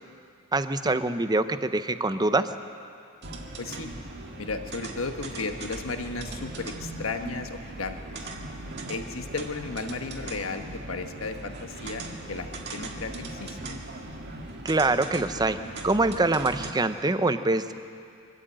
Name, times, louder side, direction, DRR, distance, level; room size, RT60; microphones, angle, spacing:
voice 1, 0.5-2.5 14.6-15.6 15.8-17.7, right 2 dB, 20° right, 10 dB, 0.7 m, -24 dB
sound 1, 3.2-16.7, right 2 dB, 55° right, 1.8 m, -39 dB
voice 2, 3.6-3.9 4.4-8.3 8.9-12.0 12.3-13.8, left 3 dB, 70° left, 6 dB, 1.4 m, -34 dB
23.0 x 13.0 x 8.9 m, 2.5 s
head